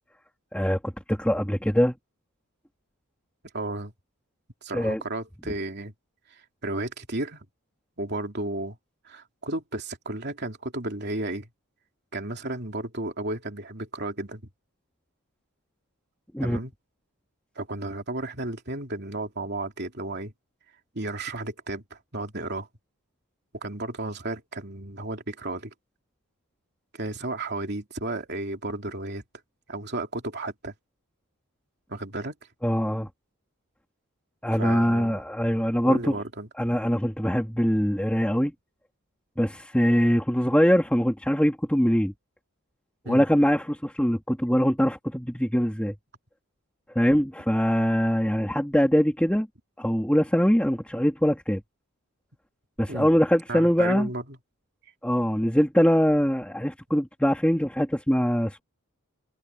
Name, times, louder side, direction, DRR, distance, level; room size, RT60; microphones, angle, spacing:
voice 1, 0.5-2.0 4.7-5.0 16.3-16.6 32.6-33.1 34.4-36.2 36.6-38.5 39.4-42.1 43.1-45.9 47.0-49.5 49.8-51.6 52.8-54.1 55.0-58.6, equal, 5° left, 2.2 m, -23 dB
voice 2, 3.5-3.9 4.6-5.9 6.3-7.4 8.0-8.8 9.0-11.5 12.1-14.4 16.4-16.7 17.5-20.3 20.9-22.7 23.6-25.7 26.9-29.2 29.7-30.7 31.9-32.3 34.5-35.2 35.8-36.5 43.0-43.2 52.9-53.1 53.5-54.4, right 2 dB, 50° right, 3.1 m, -33 dB
head